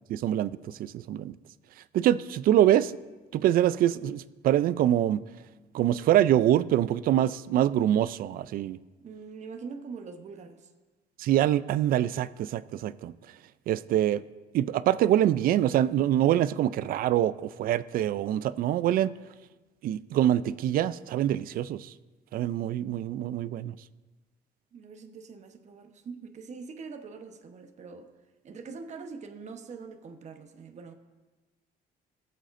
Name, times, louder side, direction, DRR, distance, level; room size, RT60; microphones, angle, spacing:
voice 1, 0.1-1.3 1.9-2.9 3.3-5.2 5.7-8.8 11.2-13.2 13.7-14.2 14.5-19.1 19.8-21.9 22.3-23.7, right 12 dB, 60° right, 16 dB, 0.4 m, -25 dB
voice 2, 9.0-10.7 24.7-28.1 28.4-30.9, right 5 dB, 45° right, 6 dB, 1.0 m, -43 dB
20.5 x 7.7 x 2.6 m, 1.2 s
cardioid pair, 110°, 17 cm